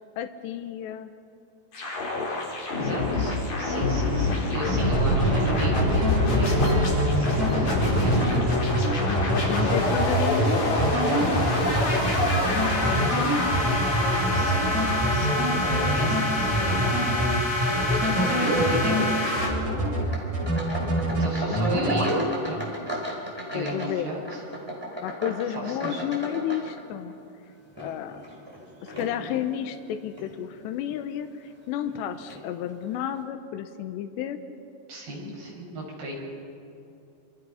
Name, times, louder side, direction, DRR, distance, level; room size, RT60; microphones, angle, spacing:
voice 1, 0.2-1.1 9.1-10.8 12.5-13.8 14.2-14.5 17.9-18.0 21.5-21.7 23.5-24.1 25.0-27.1 27.8-28.2 28.8-34.4, left 10 dB, 80° left, 7 dB, 3.1 m, -32 dB
sound 1, 1.7-19.5, left 2 dB, 45° left, 5.4 m, -26 dB
voice 2, 2.8-8.3 9.6-9.8 11.6-12.8 14.3-17.0 17.4-17.8 18.0-19.9 21.1-22.7 23.5-24.4 25.7-26.0 34.9-36.1, equal, 65° right, -3 dB, 7.9 m, -33 dB
sound 2, 4.7-19.0 19.4-20.0 20.3-21.3 21.6-22.1, right 1 dB, 40° right, 6.8 m, -25 dB
sound 3, 17.6-18.8 19.0-19.6 20.0-27.1 27.6-29.5 30.1-30.3 30.9-31.0 31.9-32.0 32.3-32.4, equal, 5° right, 3.9 m, -37 dB
27.5 x 26.5 x 5.7 m, 2.6 s
omnidirectional pair, 4.9 m